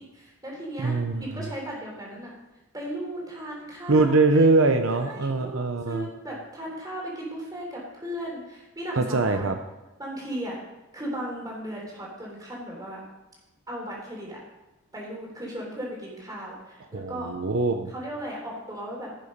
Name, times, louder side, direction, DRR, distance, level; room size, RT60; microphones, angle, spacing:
voice 1, 0.0-2.3 2.7-4.4 4.9-5.6 5.9-9.5 10.0-10.6 10.9-13.0 13.7-14.4 14.9-17.3 17.9-19.3, right 1 dB, 20° right, -2 dB, 3.5 m, -36 dB
voice 2, 0.8-1.4 3.9-6.1 9.0-9.5 16.9-17.9, right 3 dB, 75° right, 7 dB, 0.8 m, -22 dB
16.5 x 6.9 x 5.2 m, 1.0 s
head